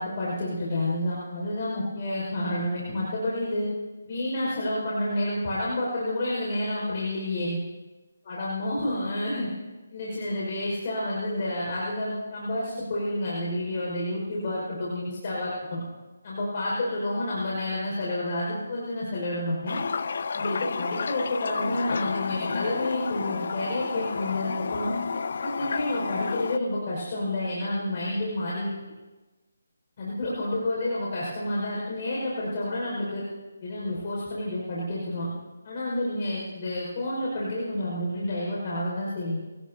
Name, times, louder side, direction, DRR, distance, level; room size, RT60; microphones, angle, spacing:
voice 1, 0.0-3.7 4.0-7.6 8.3-9.5 9.9-15.8 16.2-19.8 20.3-24.9 25.4-28.7 30.0-33.2 33.6-35.3 35.6-39.4, left 1 dB, 40° left, -6 dB, 5.6 m, -29 dB
Toilet flush, 19.7-26.6, left 5 dB, 55° left, 0.5 m, -31 dB
26.0 x 17.5 x 2.9 m, 1.2 s
hypercardioid pair, 165°, 0 cm